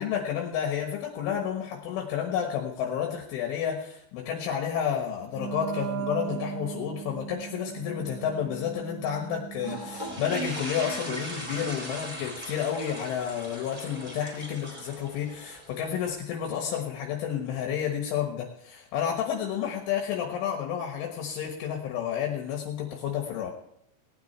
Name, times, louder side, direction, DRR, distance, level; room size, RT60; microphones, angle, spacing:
voice 1, 0.0-23.5, left 9 dB, 75° left, 1 dB, 3.8 m, -31 dB
Wind instrument woodwind instrument, 5.3-10.3, right 10 dB, 65° right, 3.9 m, -37 dB
sound 1, 9.6-16.1, right 1 dB, 15° right, 2.3 m, -38 dB
18.5 x 9.6 x 4.5 m, 0.73 s
omnidirectional pair, 5.8 m